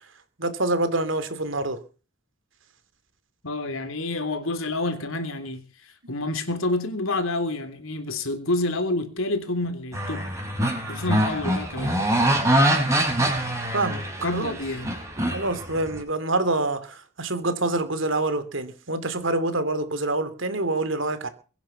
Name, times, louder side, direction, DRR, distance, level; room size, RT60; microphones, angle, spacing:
voice 1, 0.4-1.8 13.7-14.0 14.3-14.5 15.3-21.3, right 2 dB, 60° right, 2.9 m, -26 dB
voice 2, 3.4-10.3 10.9-12.0 14.2-14.9, left 2 dB, 70° left, 3.4 m, -28 dB
sound 1, 9.9-16.0, right 1 dB, 15° right, 5.8 m, -24 dB
23.0 x 10.0 x 6.0 m
head